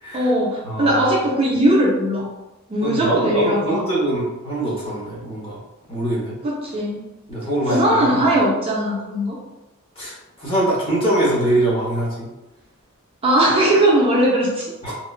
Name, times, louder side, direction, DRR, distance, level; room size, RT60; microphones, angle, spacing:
voice 1, 0.1-2.3 2.7-3.8 6.4-7.0 7.7-9.4 13.2-14.6, right 1 dB, 25° right, -3 dB, 0.3 m, -19 dB
voice 2, 0.6-1.0 2.8-5.6 5.9-6.4 7.3-8.2 10.0-12.3 14.8-14.9, right 1 dB, 25° left, -6 dB, 0.9 m, -23 dB
2.8 x 2.2 x 2.3 m, 0.99 s
head